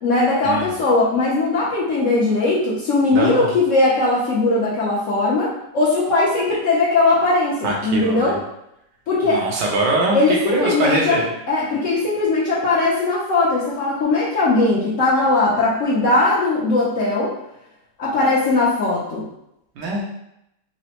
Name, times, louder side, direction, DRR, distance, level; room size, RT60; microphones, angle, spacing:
voice 1, 0.0-8.3 9.1-9.4 10.1-11.2 11.5-17.3 18.0-19.2, left 2 dB, 60° left, -7 dB, 0.8 m, -19 dB
voice 2, 3.1-3.6 7.6-8.4 9.2-11.3 19.8-20.0, right 2 dB, 80° right, -1 dB, 1.4 m, -23 dB
4.0 x 2.0 x 2.8 m, 0.82 s
omnidirectional pair, 1.9 m